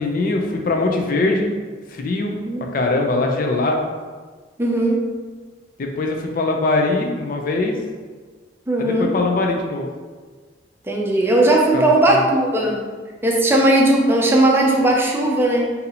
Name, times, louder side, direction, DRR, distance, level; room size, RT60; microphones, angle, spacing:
voice 1, 0.0-1.5 1.9-2.4 2.7-3.9 5.8-7.8 8.8-9.9 11.7-12.3, left 2 dB, 50° left, 2 dB, 0.4 m, -21 dB
voice 2, 4.6-5.0 8.7-9.2 10.9-12.8 13.2-15.7, right 1 dB, 15° right, -2 dB, 0.5 m, -17 dB
2.7 x 2.7 x 4.1 m, 1.5 s
head